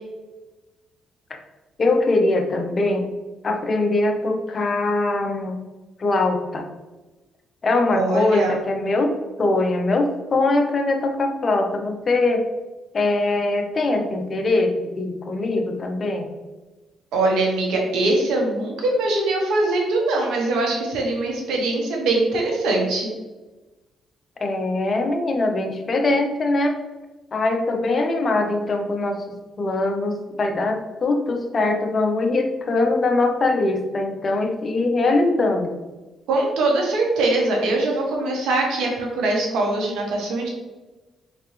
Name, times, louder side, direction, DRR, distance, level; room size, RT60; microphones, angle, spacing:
voice 1, 1.8-3.1 3.4-5.6 6.0-6.7 7.6-12.5 12.9-16.3 24.4-26.8 27.3-29.2 29.6-35.7, left 2 dB, 40° left, 4 dB, 0.7 m, -22 dB
voice 2, 7.9-8.6 17.1-23.1 36.3-40.5, right 2 dB, 85° right, 0 dB, 1.2 m, -22 dB
4.3 x 3.8 x 3.3 m, 1.2 s
cardioid pair, 90°, 0 cm